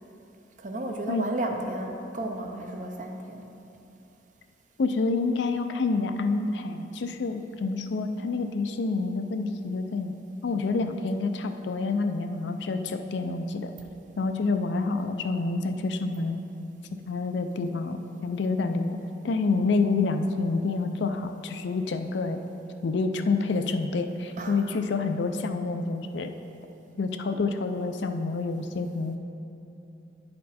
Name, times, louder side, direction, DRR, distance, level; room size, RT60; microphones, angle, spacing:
voice 1, 0.6-3.4 24.4-24.8, right 1 dB, 40° right, 3 dB, 0.6 m, -33 dB
voice 2, 4.8-10.1 10.4-13.7 14.2-16.5 17.1-18.9 19.2-22.4 22.8-26.3 27.0-29.2, left 3 dB, 75° left, 7 dB, 0.4 m, -28 dB
10.0 x 4.3 x 4.2 m, 2.9 s
head